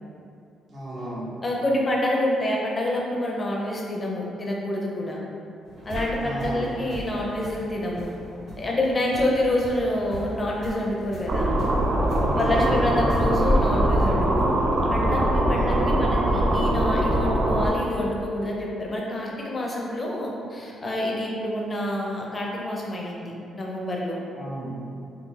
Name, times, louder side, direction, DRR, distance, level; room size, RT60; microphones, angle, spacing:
voice 1, 0.7-1.3 6.2-7.0 12.4-13.3 15.5-16.0 24.3-24.7, equal, 40° right, -11 dB, 1.0 m, -35 dB
voice 2, 1.4-5.2 5.8-8.1 8.6-11.5 12.3-14.5 14.9-24.2, left 1 dB, 30° left, -2 dB, 0.5 m, -27 dB
sound 1, 5.6-13.2, right 1 dB, 80° right, 1.5 m, -39 dB
sound 2, 11.3-17.7, right 1 dB, 60° right, 0.4 m, -22 dB
2.3 x 2.3 x 3.1 m, 2.6 s
cardioid pair, 90°, 0 cm